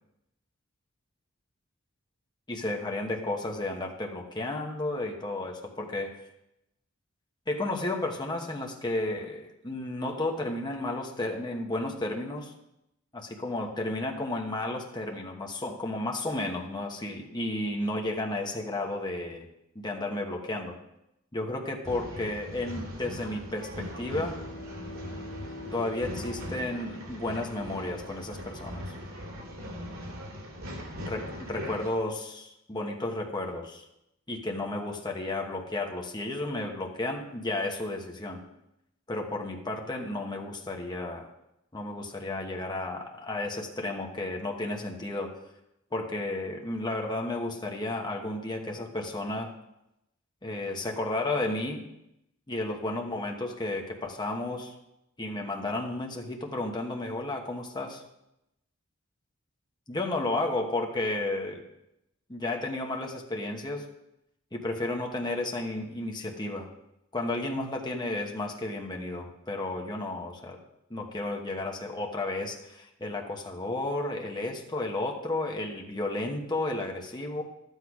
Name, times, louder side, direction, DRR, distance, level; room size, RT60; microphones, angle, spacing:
voice 1, 2.5-6.2 7.5-12.5 13.1-19.5 19.7-20.8 21.3-24.4 25.7-28.9 31.1-33.9 34.3-38.4 39.1-41.3 41.7-45.3 45.9-49.5 50.4-51.8 52.5-54.7 55.2-58.0 59.9-61.7 62.3-63.9 64.5-66.7 67.1-70.6 70.9-77.4, left 2 dB, 20° left, 1 dB, 1.1 m, -32 dB
Male speech man speaking / Chatter / Rattle, 21.8-31.9, equal, 90° right, 2.7 m, -40 dB
Bowed string instrument, 23.4-27.7, left 1 dB, 50° left, 2.1 m, -45 dB
11.5 x 8.3 x 4.8 m, 0.86 s
head